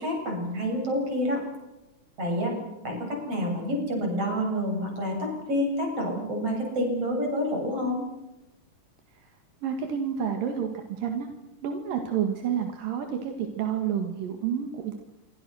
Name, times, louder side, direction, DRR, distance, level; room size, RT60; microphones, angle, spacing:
voice 1, 0.0-1.4 2.2-2.5 2.8-8.0, equal, 45° right, 1 dB, 8.9 m, -28 dB
voice 2, 9.6-11.3 11.6-14.9, right 8 dB, 80° right, 5 dB, 3.6 m, -29 dB
27.5 x 24.5 x 6.3 m, 0.99 s
omnidirectional pair, 3.9 m